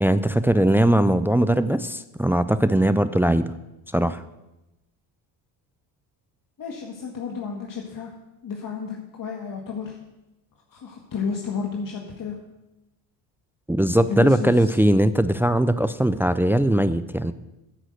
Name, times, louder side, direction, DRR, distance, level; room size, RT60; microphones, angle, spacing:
voice 1, 0.0-3.5 3.9-4.2 13.7-17.3, right 1 dB, 5° right, 13 dB, 0.4 m, -20 dB
voice 2, 6.6-8.1 8.4-10.0 10.7-12.4 14.0-14.7, left 5 dB, 40° left, 0 dB, 1.8 m, -32 dB
9.9 x 6.4 x 7.9 m, 0.95 s
supercardioid pair, 80°, 48 cm